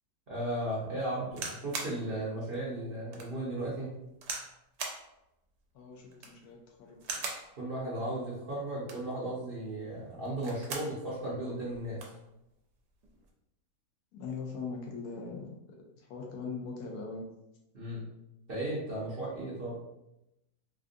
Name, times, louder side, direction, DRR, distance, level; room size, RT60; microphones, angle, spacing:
voice 1, 0.3-4.0 7.6-12.0 17.7-18.1 18.5-19.7, right 1 dB, 50° right, -8 dB, 0.7 m, -35 dB
sound 1, 1.3-2.0 2.5-2.6 3.1-3.3 4.2-4.5 4.8-5.0 6.1-6.4 7.0-7.5 8.7-9.1 10.2-10.9 11.4-11.5 11.7-12.2 13.0-13.3, right 4 dB, 75° right, 1.1 m, -39 dB
voice 2, 5.7-7.1 14.1-15.5 16.0-17.3, left 4 dB, 75° left, 0 dB, 1.0 m, -40 dB
3.5 x 2.4 x 2.5 m, 0.88 s
omnidirectional pair, 1.8 m